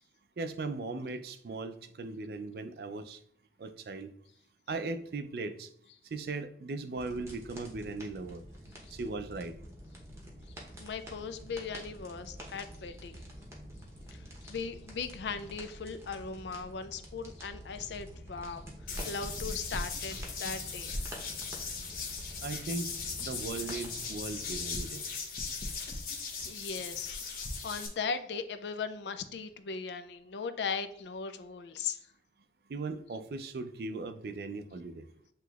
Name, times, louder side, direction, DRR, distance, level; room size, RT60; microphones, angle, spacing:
voice 1, 0.4-3.2 3.6-4.1 4.7-5.7 6.0-8.4 8.9-9.6 22.4-22.9 23.2-25.1 32.7-35.1, right 3 dB, 60° right, 9 dB, 0.4 m, -38 dB
sound 1, 6.9-24.6, equal, 15° right, 0.8 m, -48 dB
voice 2, 10.8-13.2 14.1-18.6 19.0-21.0 21.6-21.7 25.8-25.9 26.5-32.0, left 5 dB, 75° left, 10 dB, 0.4 m, -38 dB
sound 2, 18.9-27.9, left 4 dB, 50° left, 0.8 m, -38 dB
7.7 x 2.9 x 2.3 m, 0.65 s
head